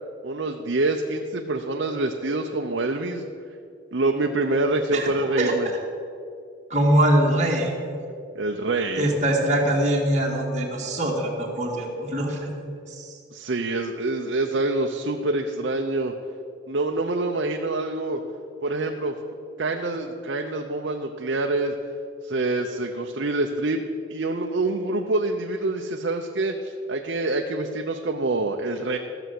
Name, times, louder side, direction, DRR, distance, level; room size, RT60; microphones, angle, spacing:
voice 1, 0.2-3.2 3.9-5.7 8.3-9.1 13.3-16.1 16.7-18.2 18.6-19.1 19.6-21.7 22.2-23.8 24.1-29.0, right 2 dB, 60° right, 3 dB, 0.7 m, -26 dB
voice 2, 4.9-5.5 6.7-7.7 9.0-12.5 12.9-13.1, right 1 dB, 35° right, -2 dB, 2.1 m, -23 dB
14.0 x 6.9 x 7.7 m, 2.4 s
head